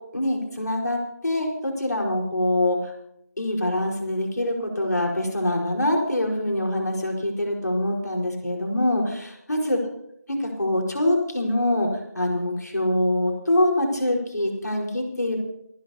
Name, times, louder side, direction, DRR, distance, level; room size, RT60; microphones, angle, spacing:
voice 1, 0.1-2.9 3.4-9.8 10.4-11.9 12.1-15.4, left 1 dB, 75° left, 0 dB, 4.7 m, -24 dB
28.0 x 12.5 x 2.9 m, 0.78 s
figure-of-eight pair, 170°, 9 cm